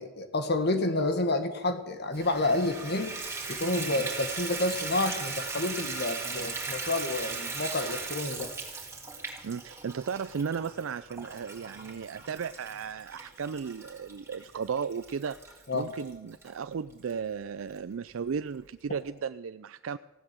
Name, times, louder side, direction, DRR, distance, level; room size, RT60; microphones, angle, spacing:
voice 1, 0.0-3.2 3.5-8.5 15.7-15.9, left 2 dB, 55° left, 9 dB, 1.6 m, -29 dB
Water tap faucet / Bathtub (filling or washing), 2.1-16.5 17.1-17.2 17.7-17.8 18.1-18.2, right 4 dB, 15° right, 3.1 m, -38 dB
voice 2, 9.4-20.0, right 6 dB, 85° right, 12 dB, 0.4 m, -35 dB
16.5 x 11.5 x 7.6 m, 1.1 s
head